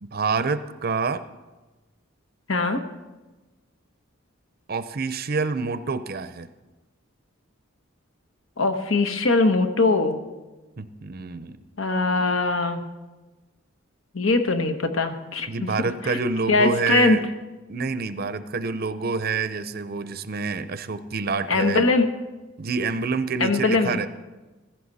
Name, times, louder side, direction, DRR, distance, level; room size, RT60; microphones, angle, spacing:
voice 1, 0.0-1.2 4.7-6.5 10.8-11.6 15.5-17.2 17.7-21.9 22.6-24.1, right 4 dB, 45° right, 12 dB, 0.6 m, -27 dB
voice 2, 2.5-2.8 8.6-10.2 11.8-12.8 14.1-15.7 16.0-16.2 16.5-17.2 21.5-22.1 23.4-24.0, left 3 dB, 70° left, 7 dB, 1.3 m, -21 dB
16.0 x 14.5 x 4.2 m, 1.2 s
head